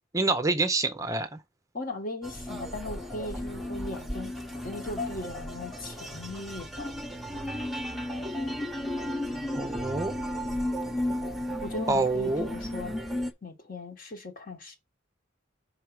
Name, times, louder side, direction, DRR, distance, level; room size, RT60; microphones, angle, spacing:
voice 1, 0.1-1.4 9.5-10.1 11.9-12.5, right 3 dB, 15° right, 0.5 m, -27 dB
voice 2, 1.7-4.4 4.6-6.9 11.6-12.9 13.4-14.8, left 2 dB, 45° left, 1.4 m, -38 dB
sound 1, 2.2-13.3, left 1 dB, ahead, 0.9 m, -34 dB
5.6 x 4.6 x 4.8 m
head